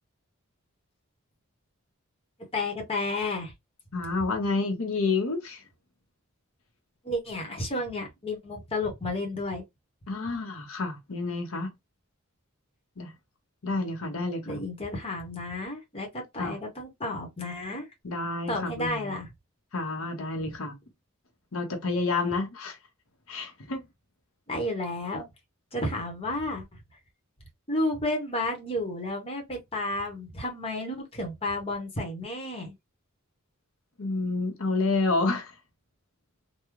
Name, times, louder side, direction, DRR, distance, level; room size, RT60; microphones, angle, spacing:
voice 1, 2.5-3.5 7.0-9.6 14.4-17.9 18.5-19.3 24.5-25.3 25.7-26.7 27.7-32.7, left 1 dB, 25° left, 1.0 m, -32 dB
voice 2, 3.9-5.6 10.1-11.7 13.0-13.1 13.6-14.6 16.4-16.6 18.0-19.1 19.7-20.7 21.5-22.8 23.3-23.8 34.0-35.5, left 3 dB, 70° left, 0.8 m, -29 dB
3.6 x 2.2 x 3.1 m
head